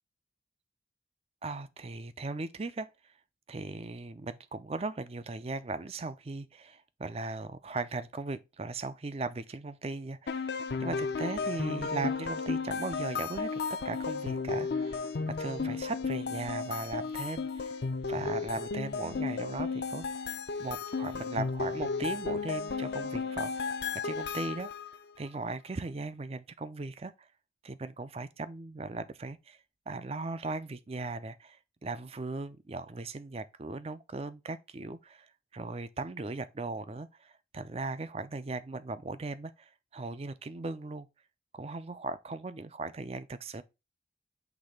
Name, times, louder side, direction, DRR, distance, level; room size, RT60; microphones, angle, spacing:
voice 1, 1.4-2.9 3.5-17.8 18.1-20.3 20.6-23.8 24.0-24.7 25.2-27.1 27.6-29.6 29.9-35.3 35.5-41.1 41.5-43.6, right 3 dB, 35° right, 0.5 m, -38 dB
sound 1, 10.3-25.0, left 4 dB, 65° left, 0.5 m, -34 dB
6.1 x 3.2 x 5.0 m
head